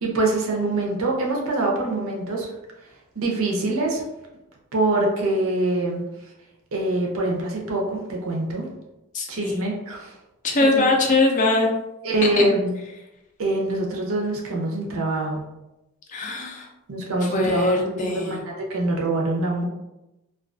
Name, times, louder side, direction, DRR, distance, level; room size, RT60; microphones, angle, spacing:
voice 1, 0.0-2.5 3.2-4.0 4.7-6.1 6.7-8.7 9.3-10.1 12.0-12.8 13.4-15.4 16.9-19.6, right 2 dB, 80° right, -1 dB, 0.6 m, -24 dB
voice 2, 9.1-9.7 10.4-11.7 12.4-12.5 16.1-16.7 17.3-18.4, left 2 dB, 35° left, 1 dB, 0.4 m, -21 dB
2.3 x 2.3 x 2.4 m, 0.95 s
head